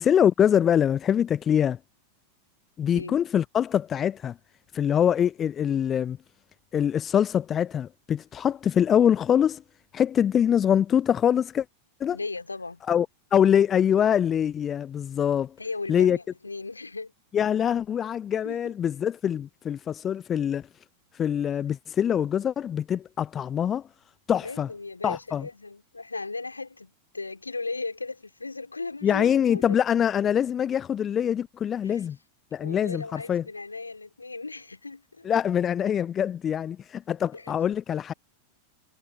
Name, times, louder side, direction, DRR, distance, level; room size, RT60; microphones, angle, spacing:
voice 1, 0.0-1.8 2.8-4.3 4.7-6.2 6.7-9.6 9.9-11.6 12.0-12.2 12.9-13.1 13.3-15.5 15.9-16.2 17.3-20.7 21.1-23.9 24.3-24.7 25.0-25.5 29.0-32.2 32.5-33.4 35.2-38.1, left 9 dB, 25° left, 0.5 m, -24 dB
voice 2, 12.1-12.8 15.6-17.1 18.4-18.7 24.4-29.8 31.8-32.0 32.6-35.3 37.3-37.5, left 3 dB, 80° left, 2.3 m, -37 dB
figure-of-eight pair, 90°, 0 cm